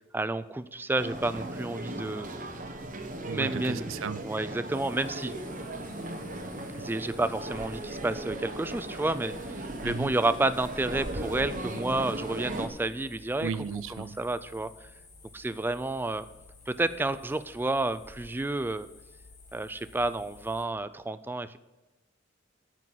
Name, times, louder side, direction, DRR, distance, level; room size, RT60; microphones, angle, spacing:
voice 1, 0.1-2.3 3.3-3.9 4.2-5.3 6.7-9.4 9.8-13.5 13.9-14.7 15.3-16.3 16.7-18.9 19.5-21.6, right 2 dB, 10° right, 13 dB, 0.3 m, -30 dB
sound 1, 1.0-12.7, right 1 dB, 45° right, 1.2 m, -37 dB
voice 2, 3.2-4.3 9.8-10.1 13.4-14.2, right 5 dB, 90° right, 15 dB, 0.5 m, -34 dB
sound 2, 4.7-20.6, left 3 dB, 40° left, 1.9 m, -53 dB
9.0 x 6.2 x 7.3 m, 1.1 s
head